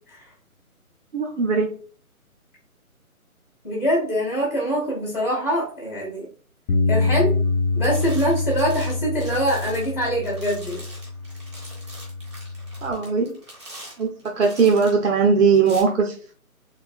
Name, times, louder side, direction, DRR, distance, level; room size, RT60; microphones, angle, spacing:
voice 1, 1.1-1.8 12.8-13.3 14.0-16.3, right 5 dB, 60° right, 1 dB, 0.7 m, -20 dB
voice 2, 3.6-6.3 6.9-7.3 7.7-10.8, equal, 15° left, -11 dB, 0.8 m, -24 dB
Bass guitar, 6.7-12.9, left 3 dB, 60° left, 0.5 m, -26 dB
sound 1, 7.3-7.6 7.8-15.0 15.5-15.8, right 1 dB, 20° right, 0.8 m, -43 dB
3.2 x 3.1 x 2.4 m, 0.43 s
figure-of-eight pair, 155°, 44 cm